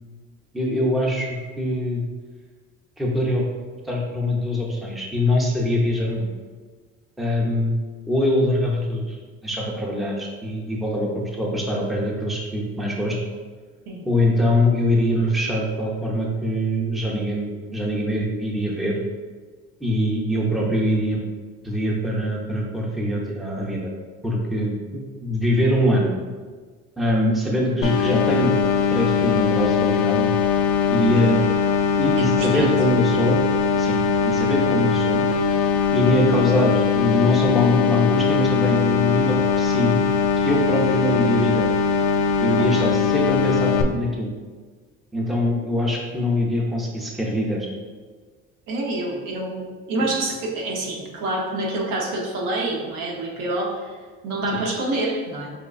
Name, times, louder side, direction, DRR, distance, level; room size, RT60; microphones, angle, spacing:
voice 1, 0.5-2.0 3.0-3.4 3.8-6.3 7.2-7.7 8.1-9.2 9.4-13.2 14.0-19.0 19.8-21.2 21.6-23.9 24.2-26.2 27.0-28.6 28.9-30.3 30.9-31.4 32.0-33.4 33.8-35.2 35.9-40.0 40.4-41.7 42.4-44.3 45.1-47.7, left 1 dB, ahead, -2 dB, 0.6 m, -23 dB
sound 1, 27.8-43.8, left 6 dB, 65° left, 0.4 m, -21 dB
voice 2, 32.1-32.7 42.6-42.9 48.7-53.9 54.2-55.5, right 2 dB, 70° right, -1 dB, 0.8 m, -27 dB
5.1 x 2.2 x 2.4 m, 1.5 s
supercardioid pair, 80°, 34 cm